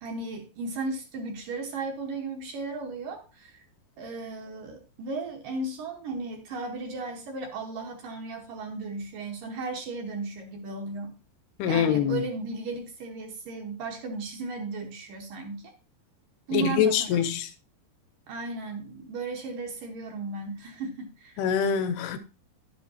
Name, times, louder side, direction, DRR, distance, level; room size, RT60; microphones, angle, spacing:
voice 1, 0.0-3.6 4.0-11.1 11.7-15.7 16.5-17.2 18.3-21.4, right 3 dB, 65° right, 2.4 m, -35 dB
voice 2, 11.6-12.2 16.5-17.5 21.4-22.2, left 8 dB, 80° left, 2.6 m, -24 dB
11.0 x 7.9 x 2.8 m
omnidirectional pair, 4.8 m